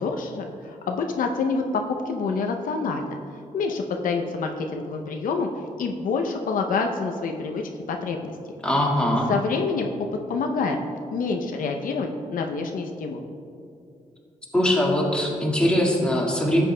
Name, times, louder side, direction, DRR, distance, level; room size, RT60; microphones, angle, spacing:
voice 1, 0.0-3.2 3.5-5.5 5.8-7.6 7.9-8.3 9.3-9.9 10.3-10.8 11.1-13.2, left 4 dB, 75° left, 3 dB, 0.6 m, -27 dB
voice 2, 8.6-9.3 14.5-16.6, left 1 dB, 5° left, -3 dB, 1.7 m, -21 dB
13.0 x 7.7 x 2.2 m, 2.5 s
cardioid pair, 110°, 14 cm